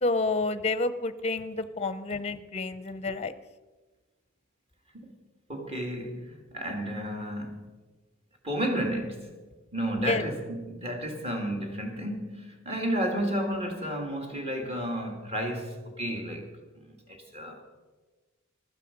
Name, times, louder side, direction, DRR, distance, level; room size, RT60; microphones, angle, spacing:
voice 1, 0.0-3.3 10.0-10.2, left 3 dB, 30° left, 0.6 m, -29 dB
voice 2, 5.5-7.6 8.4-9.3 9.7-16.5 16.7-17.6, equal, 30° right, 2.3 m, -32 dB
15.5 x 12.5 x 5.3 m
head